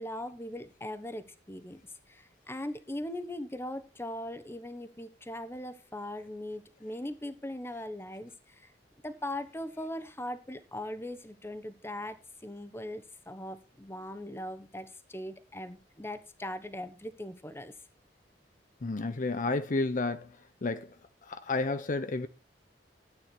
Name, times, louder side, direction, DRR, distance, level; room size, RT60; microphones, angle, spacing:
voice 1, 0.0-1.8 2.1-8.7 9.0-17.7, left 1 dB, 15° left, 1.1 m, -40 dB
voice 2, 18.8-20.3 20.6-20.9 21.3-22.3, left 3 dB, 45° left, 0.7 m, -31 dB
13.0 x 8.6 x 4.5 m
head